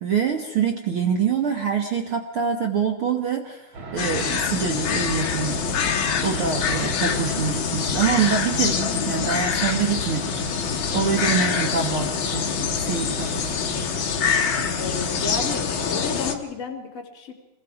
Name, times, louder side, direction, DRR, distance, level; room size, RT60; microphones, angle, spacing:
voice 1, 0.0-3.6 3.9-5.6 6.2-10.3 10.9-12.5 12.8-13.5, right 6 dB, 70° right, 4 dB, 1.2 m, -25 dB
sound 1, 3.7-16.4, right 3 dB, 45° right, 1.9 m, -38 dB
sound 2, 4.0-16.3, left 6 dB, 90° left, 1.1 m, -25 dB
voice 2, 11.8-12.2 14.8-17.3, left 4 dB, 25° left, 3 dB, 2.5 m, -32 dB
27.0 x 21.5 x 4.8 m, 0.95 s
omnidirectional pair, 4.4 m